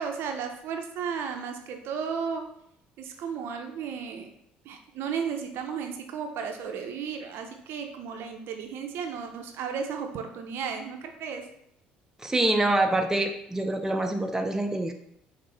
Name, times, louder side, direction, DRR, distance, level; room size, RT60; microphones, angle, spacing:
voice 1, 0.0-2.5 3.0-4.3 4.6-11.5, right 6 dB, 60° right, 5 dB, 0.6 m, -34 dB
voice 2, 12.2-14.9, right 2 dB, 10° right, 4 dB, 0.6 m, -25 dB
5.1 x 2.8 x 3.3 m, 0.75 s
hypercardioid pair, 60°, 5 cm